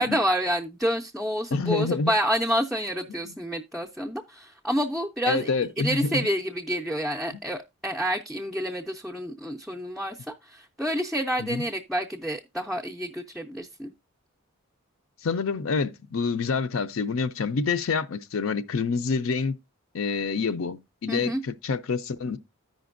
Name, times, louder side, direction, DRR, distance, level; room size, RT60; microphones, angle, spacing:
voice 1, 0.0-13.9 21.1-21.4, equal, ahead, 0.4 m, -28 dB
voice 2, 1.5-2.1 5.3-6.2 11.4-11.6 15.2-19.5 19.9-22.4, left 4 dB, 65° left, 0.5 m, -27 dB
14.0 x 5.1 x 2.5 m
head